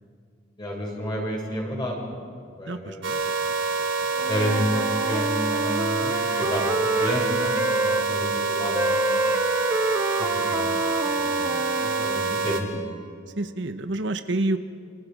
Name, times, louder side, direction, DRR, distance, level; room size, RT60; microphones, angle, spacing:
voice 1, 0.6-3.0 4.3-5.2 5.5-6.1 6.4-6.7 7.0-9.3 10.2-11.4 12.0-12.8, equal, 25° left, -2 dB, 7.5 m, -30 dB
voice 2, 2.7-4.3 6.4-6.7 11.8-12.4 13.4-14.6, right 2 dB, 65° right, 9 dB, 1.1 m, -31 dB
sound 1, 3.0-12.6, right 4 dB, 90° right, 3.3 m, -26 dB
Wind instrument woodwind instrument, 4.1-8.1 8.7-12.3, right 1 dB, 15° right, 0.7 m, -28 dB
28.5 x 27.5 x 5.4 m, 2.1 s
head